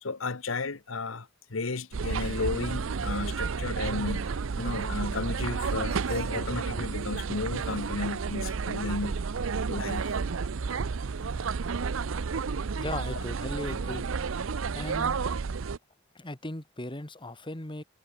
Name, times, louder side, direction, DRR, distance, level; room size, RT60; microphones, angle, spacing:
voice 1, 0.0-9.2 9.7-10.2, left 3 dB, 75° left, 1.2 m, -33 dB
sound 1, 1.9-15.8, right 5 dB, 75° right, 0.6 m, -31 dB
voice 2, 12.8-14.1 14.7-15.2 16.2-17.8, left 1 dB, 25° left, 2.2 m, -37 dB
head